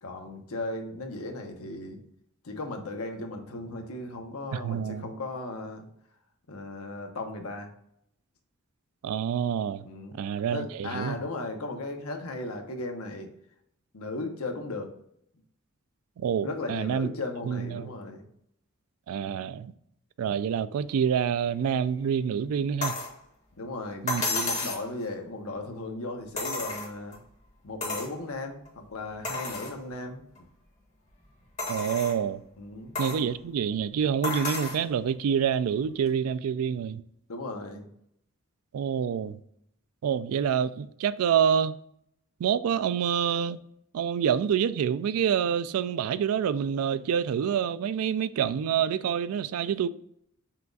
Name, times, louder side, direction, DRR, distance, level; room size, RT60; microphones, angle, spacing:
voice 1, 0.0-2.0 2.4-5.8 6.5-7.7 9.8-10.2 10.5-13.3 13.9-14.9 16.4-18.3 23.6-27.2 27.6-30.4 32.6-33.0 37.3-37.9, left 2 dB, 75° left, 0.9 m, -36 dB
voice 2, 4.5-5.1 9.0-9.9 10.1-11.2 16.2-17.1 17.5-17.9 19.1-19.7 20.2-23.0 24.0-24.2 31.7-32.4 33.0-37.0 38.7-39.4 40.0-41.8 42.4-43.6 43.9-49.9, right 8 dB, 75° right, 0.3 m, -27 dB
sound 1, 22.8-23.1 24.1-24.9 26.4-27.2 27.8-28.1 28.7-28.8 29.2-29.7 30.4-30.5 31.6-32.2 33.0-33.2 34.2-34.8 36.1-36.2, left 3 dB, 35° left, 1.4 m, -32 dB
5.7 x 2.4 x 3.8 m
head